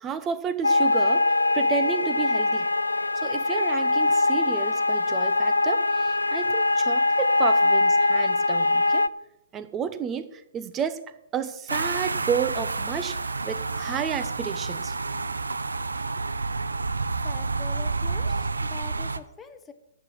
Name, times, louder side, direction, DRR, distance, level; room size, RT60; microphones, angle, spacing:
voice 1, 0.0-1.2 1.5-2.7 3.2-9.0 9.5-11.0 11.3-14.9, right 7 dB, 20° right, 12 dB, 1.1 m, -31 dB
sound 1, 0.6-9.1, left 2 dB, 80° left, 0.5 m, -22 dB
sound 2, 11.7-19.2, right 3 dB, 80° right, 0.7 m, -29 dB
voice 2, 17.2-19.7, left 5 dB, 15° left, 9 dB, 1.3 m, -44 dB
11.5 x 7.8 x 7.9 m, 0.86 s
figure-of-eight pair, 120°, 0 cm